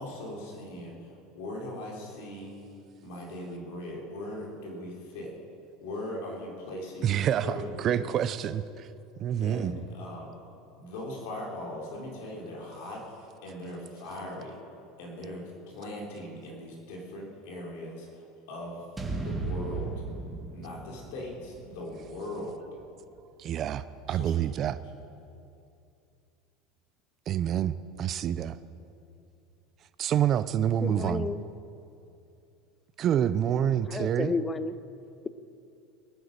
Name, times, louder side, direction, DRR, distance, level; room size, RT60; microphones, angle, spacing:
voice 1, 0.0-2.6 3.0-5.4 5.8-8.3 9.4-10.3 10.8-14.6 15.0-18.9 19.2-19.9 20.5-22.6 24.1-24.3, left 1 dB, 75° left, -1 dB, 3.8 m, -40 dB
voice 2, 7.0-8.9 9.2-9.7 23.4-24.8 27.3-28.6 30.0-31.3 33.0-34.3, right 10 dB, 35° right, 14 dB, 0.5 m, -27 dB
sound 1, 19.0-23.2, right 3 dB, 10° right, 1.5 m, -37 dB
voice 3, 30.8-31.4 33.9-34.8, left 4 dB, 15° left, 14 dB, 0.5 m, -31 dB
19.5 x 9.3 x 6.7 m, 2.6 s
supercardioid pair, 145°, 0 cm